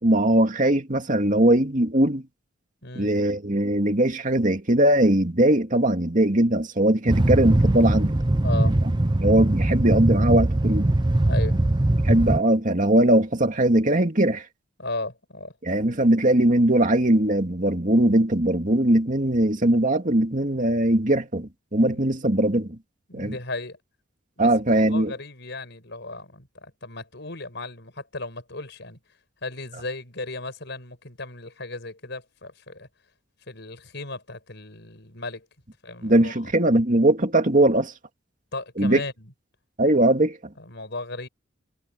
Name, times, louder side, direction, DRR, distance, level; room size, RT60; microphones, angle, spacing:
voice 1, 0.0-2.2 3.0-8.2 9.2-10.9 12.0-14.4 15.6-22.8 23.1-23.3 24.4-25.1 36.0-37.9 38.8-39.0 39.8-40.4, right 1 dB, 40° right, 2.3 m, -20 dB
sound 1, 7.1-12.4, right 1 dB, 20° right, 0.6 m, -21 dB
voice 2, 8.4-8.8 11.3-11.6 14.8-15.5 21.8-22.4 23.1-23.8 24.4-29.0 29.4-32.9 33.5-35.5 35.8-36.5 38.5-39.3 40.6-41.3, left 2 dB, 55° left, 6.6 m, -36 dB
head